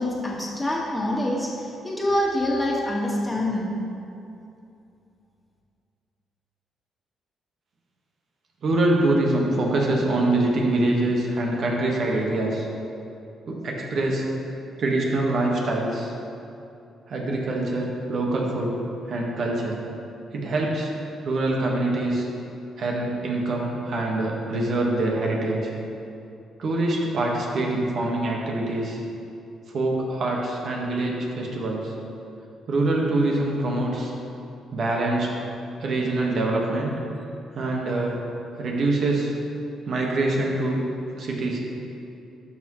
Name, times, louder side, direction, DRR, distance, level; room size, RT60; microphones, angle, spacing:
voice 1, 0.0-3.8, left 1 dB, 15° left, -3 dB, 1.8 m, -25 dB
voice 2, 8.6-12.6 13.5-14.2 14.8-16.1 17.1-18.8 19.1-19.8 20.3-20.9 21.2-22.3 22.8-25.7 26.6-29.0 29.7-31.9 32.7-34.1 34.7-35.4 35.8-37.0 37.5-38.2 38.6-39.4 39.8-40.8 41.2-41.6, right 2 dB, 60° right, -1 dB, 1.5 m, -24 dB
12.0 x 6.2 x 3.2 m, 2.7 s
cardioid pair, 90°, 0 cm